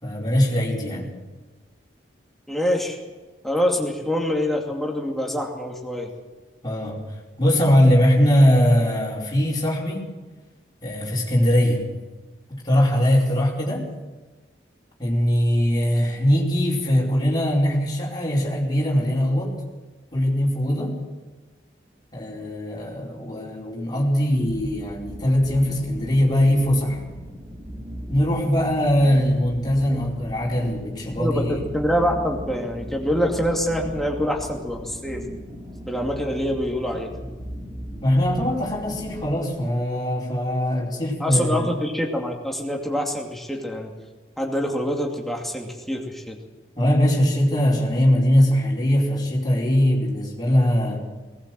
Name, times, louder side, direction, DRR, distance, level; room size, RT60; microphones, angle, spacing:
voice 1, 0.0-1.1 6.6-7.0 7.4-10.1 10.8-11.8 12.5-13.8 15.0-19.5 20.1-21.0 22.1-27.0 28.1-31.6 38.0-41.8 46.8-51.0, equal, 20° left, -3 dB, 4.7 m, -21 dB
voice 2, 2.5-3.0 3.4-6.1 7.5-7.7 31.2-35.2 35.9-37.1 41.2-43.9 44.4-46.4, equal, ahead, 0 dB, 2.5 m, -25 dB
sound 1, 24.4-39.4, equal, 20° right, 2.8 m, -37 dB
19.0 x 18.5 x 7.7 m, 1.3 s
head